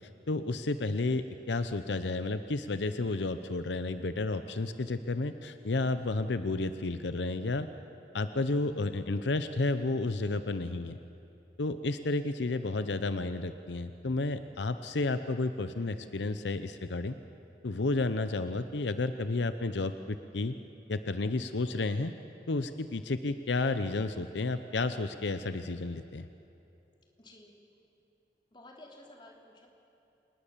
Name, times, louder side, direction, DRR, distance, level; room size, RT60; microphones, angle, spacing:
voice 1, 0.3-7.7 8.1-11.0 11.6-17.1 17.6-20.6 20.9-22.1 22.5-26.3, left 2 dB, 80° left, 10 dB, 0.7 m, -31 dB
voice 2, 27.2-27.6 28.5-29.7, left 1 dB, 25° left, 0 dB, 3.0 m, -53 dB
26.5 x 20.0 x 7.3 m, 2.8 s
head